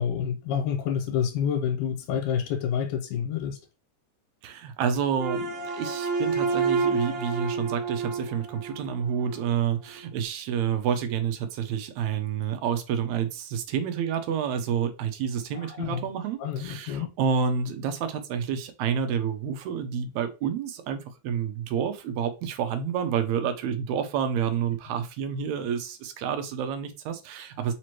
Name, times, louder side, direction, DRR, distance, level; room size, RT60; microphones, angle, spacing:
voice 1, 0.0-3.6 15.5-16.1 16.4-17.1, left 8 dB, 90° left, 2.1 m, -28 dB
voice 2, 4.4-27.7, right 7 dB, 75° right, 1.8 m, -29 dB
sound 1, 5.2-9.5, right 4 dB, 60° right, 1.6 m, -29 dB
4.9 x 3.0 x 3.0 m
omnidirectional pair, 3.5 m